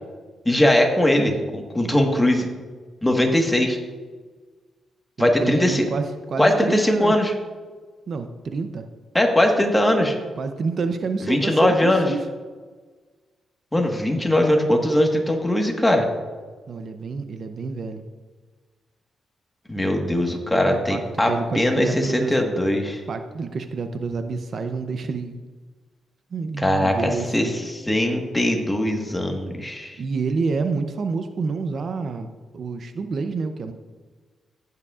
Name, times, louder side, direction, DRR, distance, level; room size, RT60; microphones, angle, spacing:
voice 1, 0.4-2.5 3.0-3.8 5.2-5.8 6.4-7.3 9.1-10.2 11.3-12.1 13.7-16.1 19.7-23.0 26.6-30.0, left 1 dB, 10° left, 2 dB, 1.4 m, -20 dB
voice 2, 5.2-7.1 8.1-8.9 10.4-12.3 16.7-18.0 20.9-22.4 23.1-25.4 26.3-27.6 30.0-32.3 32.5-33.7, right 4 dB, 50° right, 7 dB, 0.6 m, -28 dB
15.0 x 9.5 x 2.4 m, 1.4 s
cardioid pair, 120°, 0 cm